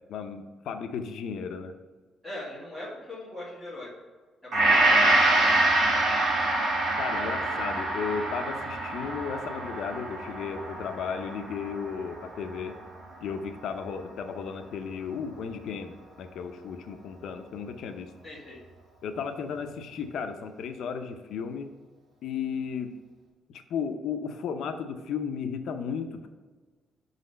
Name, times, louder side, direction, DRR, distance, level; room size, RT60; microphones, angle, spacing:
voice 1, 0.1-1.7 7.0-12.7 13.2-18.1 19.0-21.7 22.2-22.9 23.5-26.3, left 6 dB, 65° left, 6 dB, 0.5 m, -34 dB
voice 2, 2.2-3.9 4.4-5.6 7.1-7.3 18.2-18.6, left 1 dB, ahead, -8 dB, 1.6 m, -40 dB
Gong, 4.5-12.8 13.3-13.4, right 2 dB, 50° right, 1.5 m, -25 dB
5.6 x 4.0 x 5.2 m, 1.4 s
cardioid pair, 175°, 0 cm